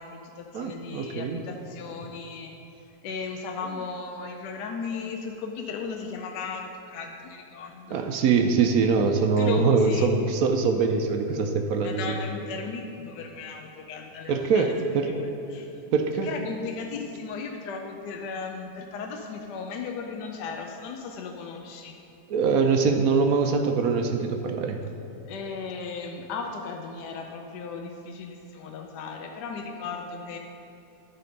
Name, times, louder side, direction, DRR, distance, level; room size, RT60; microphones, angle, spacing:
voice 1, 0.0-2.5 3.0-8.1 9.4-10.2 11.8-15.7 16.2-22.0 25.3-30.4, left 5 dB, 75° left, 3 dB, 1.2 m, -36 dB
voice 2, 0.5-1.4 7.9-12.0 14.3-15.1 15.9-16.3 22.3-24.8, right 5 dB, 70° right, 5 dB, 1.0 m, -23 dB
12.5 x 4.3 x 5.2 m, 2.9 s
omnidirectional pair, 1.9 m